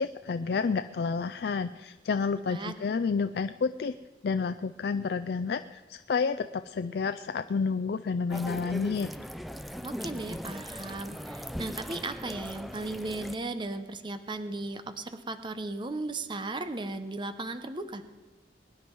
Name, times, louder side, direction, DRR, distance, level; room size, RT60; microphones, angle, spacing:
voice 1, 0.0-3.9 4.2-9.1, left 5 dB, 60° left, 10 dB, 0.4 m, -30 dB
sound 1, 8.3-13.4, equal, ahead, 0.4 m, -39 dB
voice 2, 9.8-18.0, right 2 dB, 25° right, 10 dB, 0.8 m, -36 dB
22.0 x 10.0 x 4.6 m, 1.3 s
head